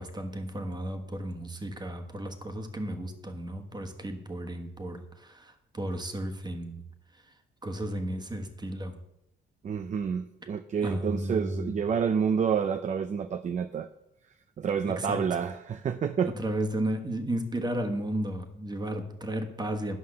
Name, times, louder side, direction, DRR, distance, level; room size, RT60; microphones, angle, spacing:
voice 1, 0.0-6.9 7.6-9.0 10.4-10.5 10.8-11.8 14.9-15.4 16.4-20.0, right 1 dB, 20° right, 5 dB, 1.3 m, -34 dB
voice 2, 9.6-13.9 14.6-16.3, right 7 dB, 40° right, 9 dB, 0.5 m, -29 dB
9.6 x 5.5 x 6.5 m, 0.87 s
cardioid pair, 90°, 20 cm